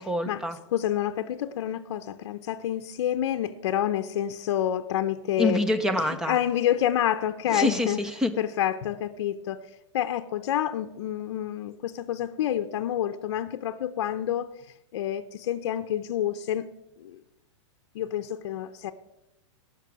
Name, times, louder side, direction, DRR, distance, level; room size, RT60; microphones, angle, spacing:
voice 1, 0.0-0.6 5.4-6.4 7.5-8.3, left 1 dB, 5° right, 10 dB, 0.4 m, -26 dB
voice 2, 0.7-5.7 6.3-8.0 8.4-9.6 9.9-14.5 14.9-16.7 17.0-17.2 17.9-18.9, left 11 dB, 55° left, 8 dB, 0.6 m, -28 dB
13.5 x 6.0 x 6.1 m, 0.88 s
supercardioid pair, 170°, 16 cm